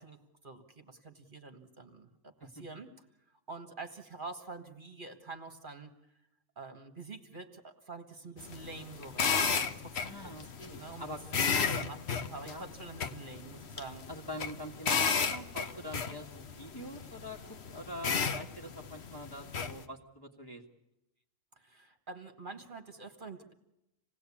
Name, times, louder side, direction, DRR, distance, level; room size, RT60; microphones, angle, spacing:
voice 1, 0.0-2.9 3.5-5.9 6.6-10.3 10.8-12.0 12.3-14.0 21.6-23.5, right 3 dB, 40° right, 5 dB, 1.6 m, -47 dB
voice 2, 8.3-8.7 10.0-11.2 11.6-11.9 12.4-12.6 14.1-20.6, equal, 20° left, -1 dB, 1.8 m, -45 dB
sound 1, 8.4-19.8, left 6 dB, 55° left, 1.3 m, -34 dB
27.0 x 18.0 x 8.5 m, 0.90 s
omnidirectional pair, 1.3 m